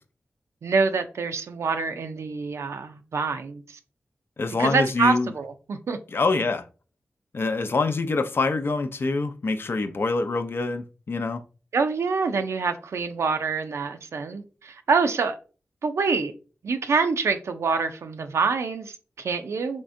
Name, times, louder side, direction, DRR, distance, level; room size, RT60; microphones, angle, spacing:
voice 1, 0.6-3.8 4.6-6.0 11.7-15.4 15.8-16.3 16.6-19.8, right 4 dB, 80° right, 0.4 m, -26 dB
voice 2, 4.4-5.3 6.1-6.6 7.3-11.4, left 3 dB, 55° left, 0.4 m, -25 dB
3.6 x 3.3 x 2.5 m
cardioid pair, 45°, 5 cm